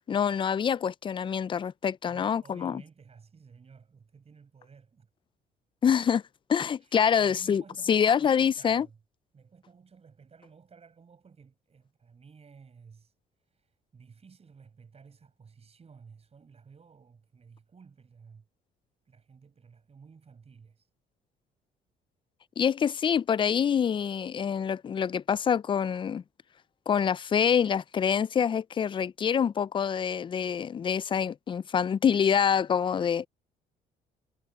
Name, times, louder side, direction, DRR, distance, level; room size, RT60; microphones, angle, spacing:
voice 1, 0.1-2.8 5.8-6.2 6.5-7.6 7.9-8.9 22.6-26.2 26.9-33.3, left 7 dB, 30° left, 0.3 m, -26 dB
voice 2, 2.1-5.1 6.8-9.0 9.3-13.1 13.4-18.5 19.0-20.9, right 5 dB, 35° right, 5.5 m, -54 dB
cardioid pair, 95°, 17 cm